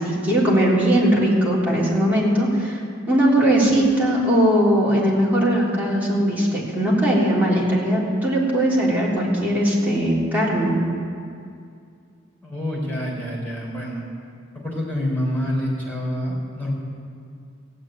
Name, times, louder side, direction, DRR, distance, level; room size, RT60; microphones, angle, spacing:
voice 1, 0.0-2.8 3.1-10.8, right 1 dB, 10° right, -6 dB, 3.4 m, -19 dB
voice 2, 12.4-14.0 14.5-16.7, left 1 dB, 10° left, -5 dB, 4.6 m, -27 dB
15.5 x 8.6 x 9.2 m, 2.3 s
head